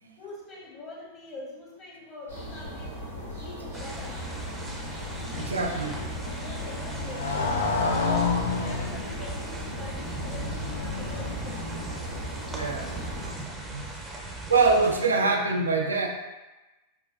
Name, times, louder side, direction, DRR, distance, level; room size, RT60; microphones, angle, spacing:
voice 1, 0.0-3.0 3.4-4.2 5.1-5.8 6.2-11.7, left 2 dB, 30° left, -4 dB, 1.1 m, -44 dB
sound 1, 2.3-13.3, equal, 90° left, 1.5 m, -38 dB
Rainy mid afternoon in a garden (ambience), 3.7-15.0, right 2 dB, 10° right, 0.6 m, -38 dB
Motorcycle, 4.1-12.1, left 4 dB, 70° left, 0.4 m, -32 dB
voice 2, 5.4-5.9 12.5-12.9 13.2-13.3 13.7-13.9 14.5-16.1, right 4 dB, 75° right, 3 dB, 0.4 m, -24 dB
4.7 x 2.2 x 2.4 m, 1.1 s
figure-of-eight pair, 90°, 0 cm